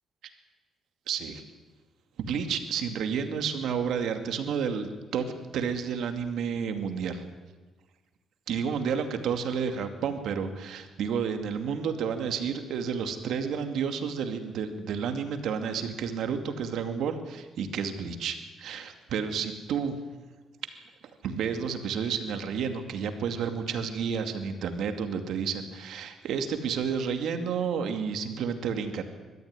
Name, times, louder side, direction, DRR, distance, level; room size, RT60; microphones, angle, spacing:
voice 1, 1.1-1.4 2.2-7.2 8.5-20.0 21.2-29.1, right 6 dB, 75° right, 7 dB, 2.4 m, -31 dB
21.5 x 13.5 x 9.7 m, 1.3 s
cardioid pair, 90°, 0 cm